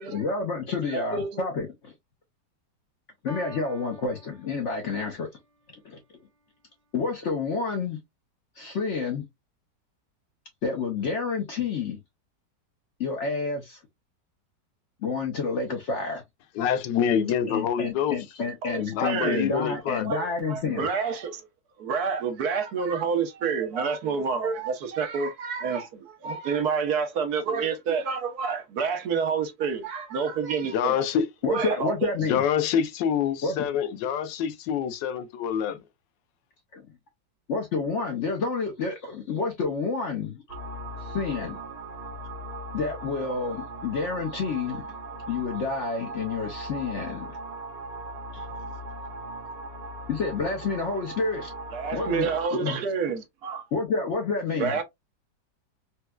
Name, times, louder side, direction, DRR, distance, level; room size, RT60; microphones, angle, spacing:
voice 1, 0.1-1.9 3.2-5.3 5.8-6.0 6.9-8.0 8.6-9.2 10.6-12.0 13.0-13.8 15.0-16.2 17.5-20.9 31.4-32.4 33.4-33.6 36.7-36.9 37.5-40.4 41.0-41.6 42.7-44.9 45.3-47.3 48.3-48.4 50.1-51.5 51.9-52.8 53.7-54.8, left 4 dB, 60° left, 0.8 m, -29 dB
voice 2, 0.9-1.5 18.6-19.5 20.0-21.4 21.8-31.0 31.5-32.1 51.7-53.6 54.6-54.8, right 6 dB, 65° right, 1.1 m, -28 dB
Piano, 3.3-5.2, left 1 dB, 15° left, 0.6 m, -46 dB
voice 3, 16.6-18.2 18.8-20.1 30.7-31.3 32.3-35.8, left 8 dB, 85° left, 1.3 m, -26 dB
sound 1, 40.5-52.5, right 2 dB, 85° right, 1.6 m, -39 dB
4.3 x 2.2 x 2.2 m
omnidirectional pair, 1.9 m